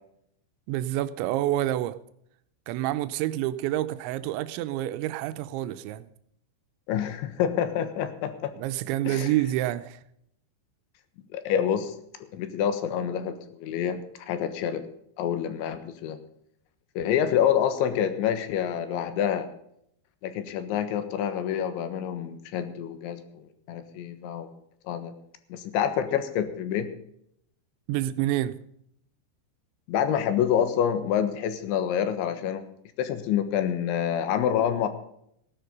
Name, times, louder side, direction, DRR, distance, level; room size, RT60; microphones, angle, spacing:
voice 1, 0.7-2.0 2.7-6.1 8.5-10.0 27.9-28.6, right 14 dB, 85° right, 3.0 m, -28 dB
voice 2, 6.9-8.5 9.1-9.3 11.3-12.0 12.3-14.9 15.2-16.2 17.0-19.5 20.2-24.5 24.9-25.1 25.5-26.9 29.9-32.7 33.0-34.9, left 9 dB, 90° left, 3.7 m, -27 dB
16.0 x 11.0 x 5.3 m
omnidirectional pair, 5.3 m